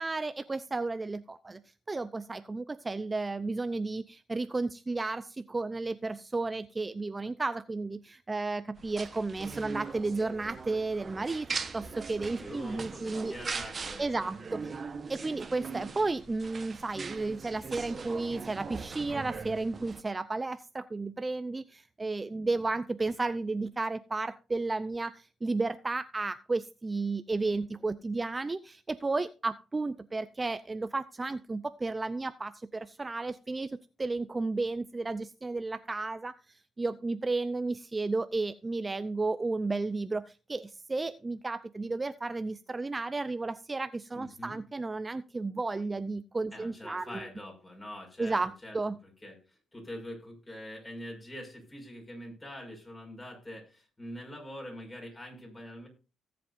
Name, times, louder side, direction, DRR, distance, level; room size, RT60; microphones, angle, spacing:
voice 1, 0.0-1.6 1.9-13.3 14.0-14.6 15.1-47.2 48.2-49.0, right 3 dB, 20° right, 12 dB, 0.5 m, -33 dB
sound 1, 8.8-20.0, right 5 dB, 40° right, 1.1 m, -41 dB
voice 2, 12.4-14.3 14.7-14.8 44.1-44.6 46.5-55.9, equal, 20° left, 2 dB, 5.9 m, -44 dB
17.5 x 7.7 x 2.6 m, 0.33 s
cardioid pair, 90°, 0 cm